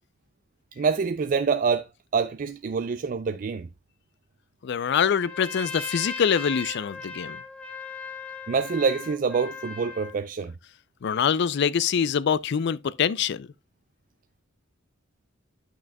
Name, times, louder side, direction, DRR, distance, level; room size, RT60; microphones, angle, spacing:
voice 1, 0.7-3.7 8.5-10.5, right 5 dB, 45° right, 0.4 m, -26 dB
voice 2, 4.6-7.4 11.0-13.5, left 7 dB, 60° left, 0.4 m, -24 dB
Trumpet, 5.1-10.2, left 4 dB, 5° left, 1.0 m, -37 dB
10.5 x 6.1 x 2.2 m
head